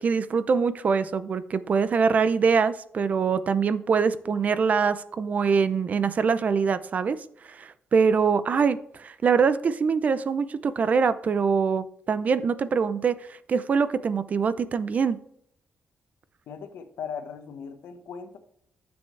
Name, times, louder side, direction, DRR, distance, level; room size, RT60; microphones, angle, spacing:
voice 1, 0.0-7.2 7.5-15.2, right 5 dB, 45° right, 14 dB, 0.5 m, -24 dB
voice 2, 16.5-18.4, left 6 dB, 85° left, 8 dB, 1.1 m, -38 dB
9.6 x 7.1 x 3.3 m, 0.71 s
cardioid pair, 130°, 4 cm